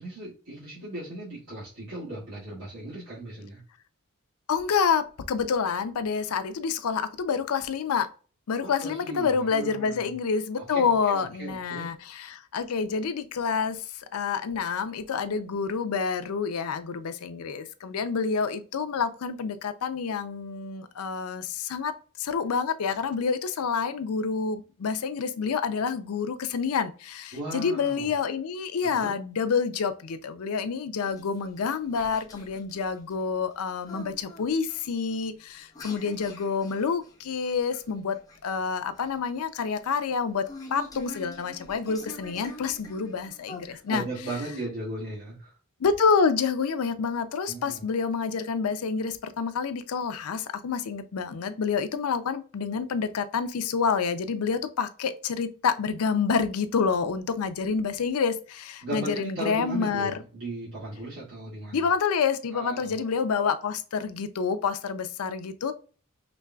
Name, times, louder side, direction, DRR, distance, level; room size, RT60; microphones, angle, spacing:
voice 1, 0.0-3.6 8.6-10.0 10.7-11.9 27.3-28.1 28.8-29.2 43.7-45.5 47.5-47.8 58.8-61.8 62.5-63.0, right 2 dB, 85° right, 2.0 m, -37 dB
voice 2, 4.5-8.1 8.5-13.8 14.1-21.9 22.2-38.2 38.4-40.4 40.7-44.0 45.8-60.2 61.7-65.7, left 5 dB, 90° left, 0.5 m, -28 dB
sound 1, 31.0-44.4, left 2 dB, 15° left, 0.9 m, -46 dB
5.1 x 3.2 x 2.2 m
head